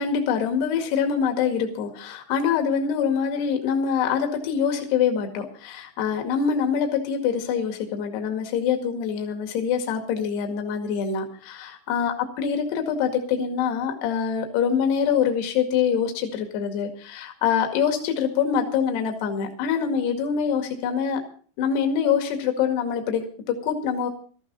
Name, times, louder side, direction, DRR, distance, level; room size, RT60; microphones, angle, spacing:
voice 1, 0.0-21.2 21.6-24.1, left 7 dB, 65° left, 4 dB, 3.9 m, -25 dB
18.0 x 14.0 x 4.1 m, 0.42 s
omnidirectional pair, 5.3 m